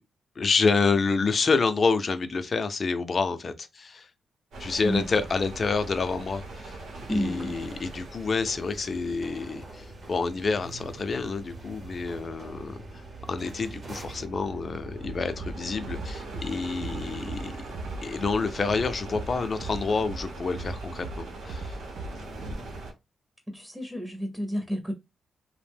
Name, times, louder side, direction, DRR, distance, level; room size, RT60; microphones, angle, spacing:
voice 1, 0.4-4.1 4.6-6.8 7.1-13.0 13.3-17.5 18.0-21.8 22.1-22.7, left 4 dB, 45° left, 0.4 m, -28 dB
sound 1, 4.5-22.9, right 2 dB, 90° right, 0.8 m, -41 dB
sound 2, 6.9-14.3, right 2 dB, 50° right, 0.8 m, -48 dB
voice 2, 7.1-7.6 23.5-24.9, equal, 5° right, 0.6 m, -30 dB
Bass drum, 15.0-15.5 15.9-16.5 16.8-17.4 17.7-18.3 18.7-19.3 19.6-20.2 20.5-21.2 21.5-22.1 22.4-22.5, right 2 dB, 70° right, 0.4 m, -37 dB
2.5 x 2.0 x 3.3 m
cardioid pair, 85°, 0 cm